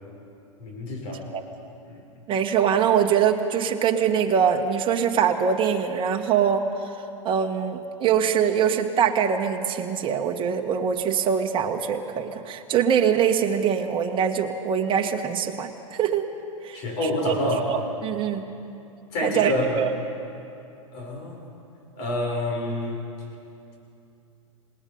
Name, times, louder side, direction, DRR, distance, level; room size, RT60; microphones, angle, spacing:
voice 1, 0.6-1.3 1.8-2.0 16.7-17.7 19.1-19.8 20.9-21.4 21.9-23.0, left 1 dB, 50° left, 0 dB, 6.6 m, -28 dB
voice 2, 2.3-6.6 7.2-16.3 16.6-16.8 17.2-18.4 19.2-19.9, right 7 dB, 30° right, 3 dB, 1.4 m, -23 dB
27.5 x 19.5 x 5.4 m, 2.7 s
hypercardioid pair, 105°, 18 cm